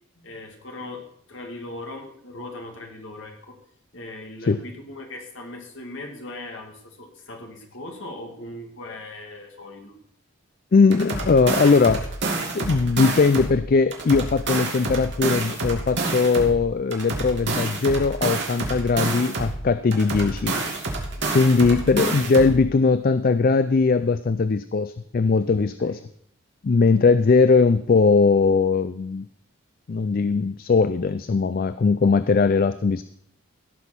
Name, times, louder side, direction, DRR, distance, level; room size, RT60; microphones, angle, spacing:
voice 1, 0.1-3.6 3.9-9.9 21.1-21.6 25.8-26.0, left 2 dB, 60° left, 2 dB, 2.4 m, -39 dB
voice 2, 10.7-12.1 12.5-20.6 21.3-26.0 26.6-29.3 29.9-33.0, left 4 dB, 40° left, 13 dB, 0.4 m, -20 dB
sound 1, 10.9-13.6 13.9-16.6 16.9-19.6 19.9-22.6, right 3 dB, 55° right, 2.6 m, -28 dB
16.5 x 6.1 x 6.1 m, 0.66 s
head